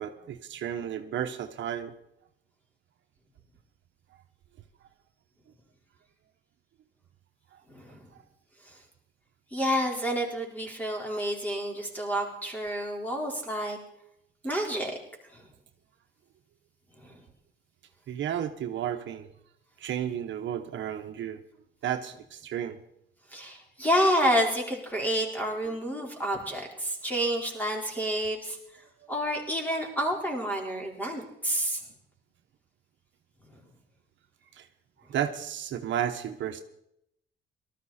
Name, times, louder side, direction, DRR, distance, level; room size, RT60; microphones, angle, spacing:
voice 1, 0.0-1.9 7.5-7.6 18.1-19.3 19.8-21.4 21.8-22.8 34.5-34.7 35.1-36.6, right 10 dB, 70° right, 7 dB, 1.1 m, -32 dB
voice 2, 7.7-8.1 8.6-8.8 9.5-13.8 14.4-15.0 15.3-15.5 17.0-17.2 23.3-28.6 29.1-31.8 33.5-33.6, equal, 10° left, 0 dB, 4.4 m, -29 dB
19.0 x 13.5 x 4.3 m, 0.78 s
cardioid pair, 90°, 20 cm